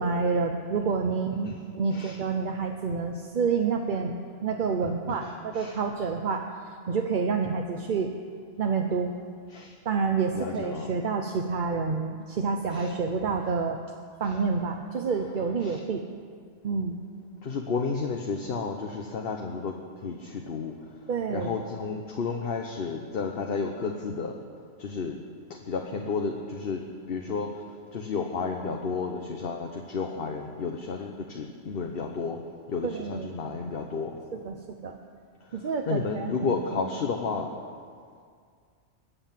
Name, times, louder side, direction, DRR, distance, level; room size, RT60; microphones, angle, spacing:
voice 1, 0.0-8.1 8.6-9.1 9.8-13.8 14.2-16.1 16.6-17.0 21.1-21.5 32.8-33.3 34.3-34.9 35.5-36.9, right 5 dB, 45° right, 3 dB, 0.8 m, -28 dB
voice 2, 4.8-5.8 9.5-9.7 10.3-10.9 12.7-12.9 14.2-14.4 15.6-15.8 17.4-19.7 20.0-20.7 21.3-24.3 24.8-25.2 25.5-27.5 27.9-32.4 32.7-34.1 35.9-37.5, left 4 dB, 50° left, 3 dB, 1.1 m, -32 dB
21.0 x 7.9 x 7.4 m, 2.1 s
omnidirectional pair, 1.3 m